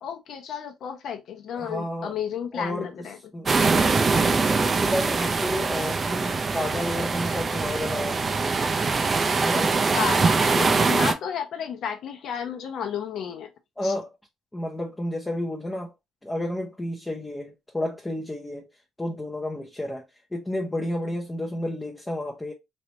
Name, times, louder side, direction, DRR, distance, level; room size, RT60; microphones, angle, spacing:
voice 1, 0.0-3.2 9.9-13.5 13.8-13.9, left 8 dB, 65° left, 0.8 m, -32 dB
voice 2, 1.6-2.1 2.5-2.9 3.3-8.3 9.4-9.8 10.0-10.1 13.8-14.1 14.5-15.9 16.2-18.7 19.0-20.1 20.3-22.5, left 1 dB, 10° left, 0.6 m, -31 dB
sound 1, 3.5-11.1, right 4 dB, 35° right, 0.5 m, -23 dB
3.2 x 2.9 x 2.7 m
cardioid pair, 95°, 0 cm